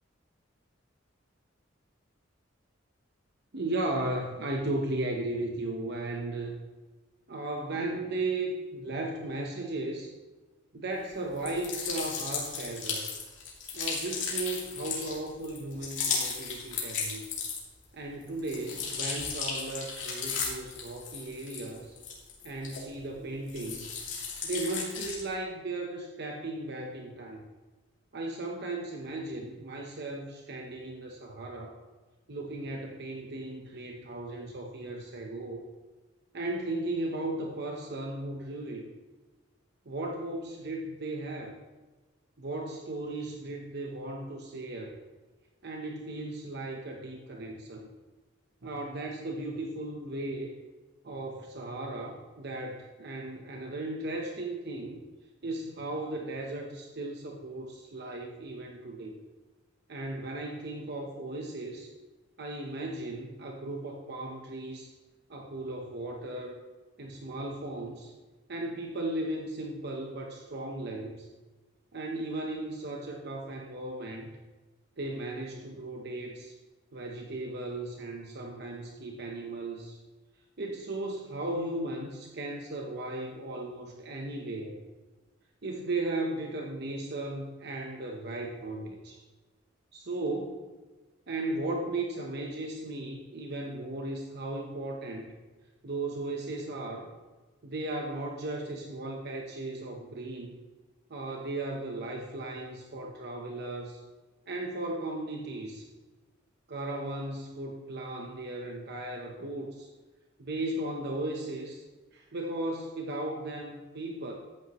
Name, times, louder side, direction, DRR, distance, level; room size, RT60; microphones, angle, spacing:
voice 1, 3.5-6.5 7.3-10.1 10.7-13.1 13.7-17.2 17.9-22.0 22.4-24.0 24.4-27.4 28.1-31.8 32.3-35.6 36.3-38.8 39.9-41.6 42.4-45.0 45.6-47.9 48.6-50.6 51.0-55.0 55.4-59.2 59.9-61.9 62.4-64.9 65.3-66.6 67.0-68.1 68.5-71.3 71.9-74.3 75.0-76.5 76.9-80.0 80.6-84.8 85.6-89.2 89.9-90.7 91.3-95.3 95.8-97.1 97.6-100.6 101.1-104.0 104.5-105.8 106.7-109.9 110.4-111.8 112.1-114.3, right 2 dB, 55° right, 1 dB, 0.9 m, -36 dB
sound 1, 11.4-17.8 18.2-23.1 23.5-25.3, left 5 dB, 65° left, 2.7 m, -35 dB
13.0 x 8.6 x 3.1 m, 1.3 s
head